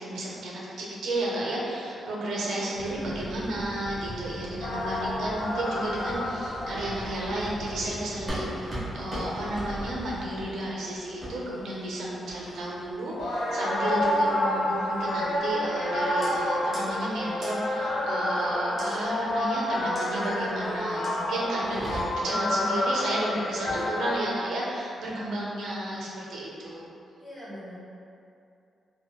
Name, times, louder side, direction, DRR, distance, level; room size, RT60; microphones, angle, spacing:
voice 1, 0.0-26.9, right 1 dB, 80° right, -5 dB, 0.6 m, -33 dB
voice 2, 2.3-3.3 27.2-27.7, equal, 35° left, -9 dB, 1.2 m, -41 dB
sound 1, 2.7-10.2, right 1 dB, 50° right, 0.8 m, -41 dB
sound 2, 4.6-11.3 11.8-12.2 12.5-24.2, left 1 dB, 75° left, 0.6 m, -29 dB
sound 3, 8.3-8.4 8.7-8.8 9.1-9.2 9.5-9.7 10.3-10.5 11.2-11.3 12.3-12.6 13.2-13.5 14.0-14.3 15.1-15.4 16.2-16.3 16.7-16.8 17.4-17.5 18.8-19.0 19.9-20.1 21.0-21.2 21.6-22.3 23.5-23.9, right 1 dB, 15° right, 1.1 m, -38 dB
4.1 x 2.2 x 2.3 m, 2.6 s
wide cardioid pair, 145°, 0 cm